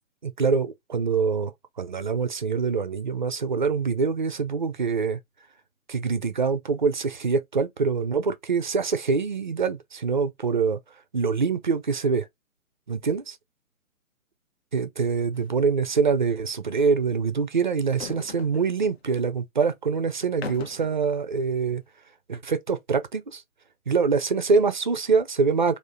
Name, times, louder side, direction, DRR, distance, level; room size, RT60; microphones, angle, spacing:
voice 1, 0.2-1.5 1.8-5.2 5.9-10.8 11.1-12.3 12.9-13.4 14.7-21.8 22.3-23.4 23.9-25.8, right 5 dB, 35° right, 0.4 m, -25 dB
sound 1, 15.3-15.5 15.8-15.9 17.8-19.0 20.2-21.0, left 5 dB, 50° left, 0.5 m, -40 dB
3.5 x 2.5 x 3.4 m
figure-of-eight pair, 135°, 42 cm